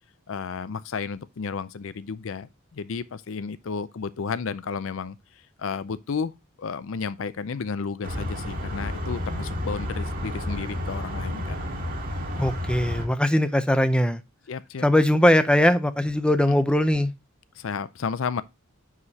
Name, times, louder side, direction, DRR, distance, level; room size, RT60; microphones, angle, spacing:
voice 1, 0.3-5.2 5.6-6.3 6.6-11.6 14.5-14.9 16.5-16.6 17.6-18.4, left 5 dB, 65° left, 0.4 m, -32 dB
sound 1, 8.0-13.1, left 1 dB, 40° right, 2.0 m, -31 dB
voice 2, 12.4-14.2 14.8-17.1, left 1 dB, 5° left, 0.5 m, -20 dB
9.7 x 4.9 x 2.7 m
head